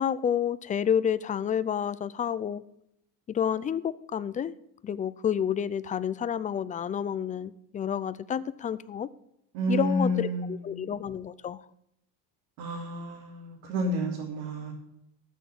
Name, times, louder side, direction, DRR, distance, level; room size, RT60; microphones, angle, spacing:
voice 1, 0.0-2.6 3.3-4.5 4.8-9.1 9.7-11.6, left 8 dB, 20° left, 17 dB, 0.4 m, -29 dB
voice 2, 9.5-10.8 12.6-14.7, equal, 75° right, -2 dB, 3.0 m, -30 dB
13.5 x 6.4 x 7.5 m, 0.79 s
cardioid pair, 130°, 43 cm